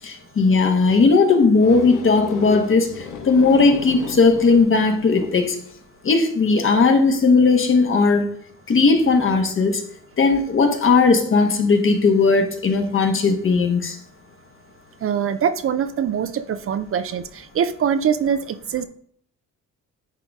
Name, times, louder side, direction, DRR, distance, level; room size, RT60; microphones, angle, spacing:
voice 1, 0.0-5.6 6.0-8.2 8.7-9.8 10.2-14.0, left 4 dB, 45° left, 5 dB, 1.3 m, -17 dB
sound 1, 1.6-5.6, left 7 dB, 80° left, 1.1 m, -33 dB
voice 2, 15.0-18.9, right 8 dB, 45° right, 12 dB, 0.5 m, -23 dB
9.7 x 3.9 x 3.6 m, 0.62 s
cardioid pair, 90°, 30 cm